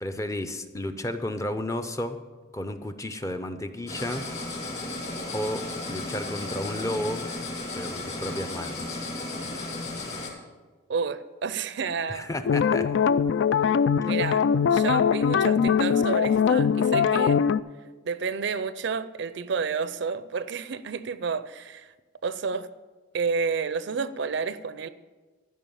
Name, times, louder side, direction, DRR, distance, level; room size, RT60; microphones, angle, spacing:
voice 1, 0.0-2.2 2.5-4.3 5.3-5.6 5.9-7.3 7.7-9.0 12.1-12.9 14.0-14.2, left 1 dB, 15° left, 0.5 m, -32 dB
sound 1, 3.9-10.3, left 2 dB, 35° left, 2.3 m, -34 dB
voice 2, 10.9-12.3 14.0-14.4 14.7-17.4 18.0-21.9 22.2-22.7 23.1-24.9, right 5 dB, 60° right, 0.5 m, -30 dB
sound 2, 12.4-17.6, left 7 dB, 65° left, 0.3 m, -22 dB
13.0 x 5.3 x 7.1 m
head